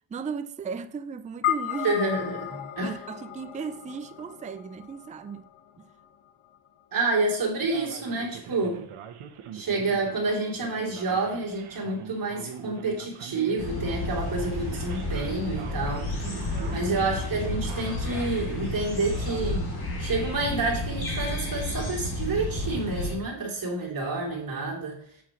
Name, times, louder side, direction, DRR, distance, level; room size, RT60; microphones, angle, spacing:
voice 1, 0.1-2.0 2.8-5.5 5.8-5.9 16.2-16.9 23.3-23.5, right 5 dB, 15° right, 0.3 m, -36 dB
sound 1, 1.4-6.0, left 12 dB, 80° left, 1.2 m, -34 dB
voice 2, 1.8-3.0 6.9-8.8 9.5-16.4 16.7-19.7 20.0-25.0, right 3 dB, 45° right, 3.2 m, -29 dB
Male speech man speaking, 7.6-19.6, right 8 dB, 85° right, 1.1 m, -43 dB
sound 2, 13.6-23.2, left 2 dB, 50° left, 2.8 m, -31 dB
9.2 x 7.6 x 3.1 m
wide cardioid pair, 155°, 49 cm